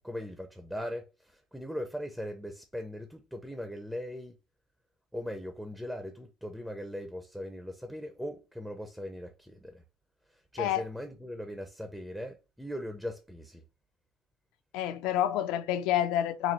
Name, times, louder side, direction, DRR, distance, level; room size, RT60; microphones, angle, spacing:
voice 1, 0.0-4.3 5.1-9.8 10.3-13.6, equal, ahead, 0.4 m, -39 dB
voice 2, 14.7-16.5, left 11 dB, 75° left, 0.4 m, -28 dB
4.1 x 2.6 x 3.0 m
cardioid pair, 150°, 0 cm